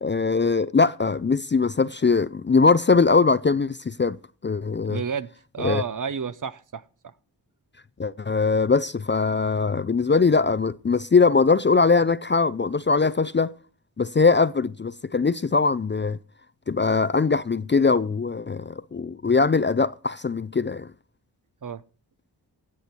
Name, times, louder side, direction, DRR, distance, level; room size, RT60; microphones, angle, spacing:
voice 1, 0.0-4.2 4.4-5.0 5.6-5.8 8.0-13.5 14.0-16.2 16.7-20.9, left 4 dB, 25° left, 0.5 m, -21 dB
voice 2, 4.8-7.1 21.6-21.8, right 6 dB, 45° right, 0.7 m, -31 dB
15.0 x 7.9 x 4.3 m
cardioid pair, 40°, 43 cm